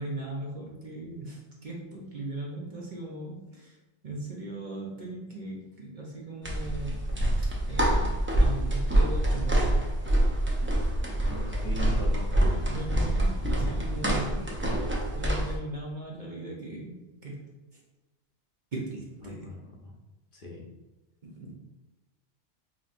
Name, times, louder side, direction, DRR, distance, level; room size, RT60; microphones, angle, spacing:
voice 1, 0.0-3.8 4.0-9.8 11.7-14.6 15.1-17.8 18.7-19.5 21.2-21.5, right 2 dB, 45° right, -3 dB, 0.9 m, -39 dB
sound 1, 6.4-15.6, right 1 dB, 15° right, 0.5 m, -26 dB
voice 2, 11.3-12.3 19.2-19.9 20.3-20.6, left 2 dB, 55° left, -2 dB, 0.9 m, -39 dB
5.8 x 2.8 x 2.5 m, 1.1 s
omnidirectional pair, 1.2 m